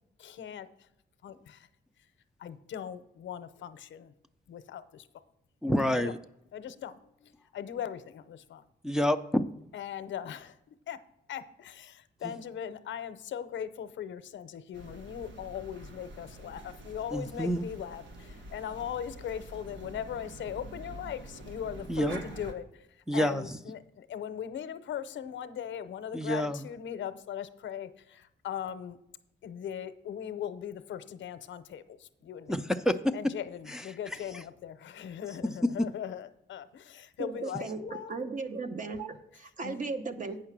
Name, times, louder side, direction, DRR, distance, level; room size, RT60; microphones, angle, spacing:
voice 1, 0.2-0.7 1.2-1.7 2.4-4.1 4.5-5.1 6.0-6.1 6.5-8.6 9.7-10.5 10.9-11.0 11.3-22.6 23.1-29.0 29.4-32.5 33.1-38.2 39.6-39.8, left 9 dB, 85° left, 12 dB, 0.7 m, -39 dB
voice 2, 5.6-6.2 8.8-9.5 17.1-17.6 21.9-22.2 23.1-23.4 26.1-26.6 32.5-33.1 33.7-33.8, equal, 5° right, 5 dB, 0.4 m, -28 dB
sound 1, 14.7-22.5, right 1 dB, 85° right, 1.4 m, -46 dB
voice 3, 37.2-40.4, right 4 dB, 45° right, 8 dB, 0.9 m, -37 dB
8.8 x 5.8 x 6.0 m, 0.81 s
wide cardioid pair, 135°, 19 cm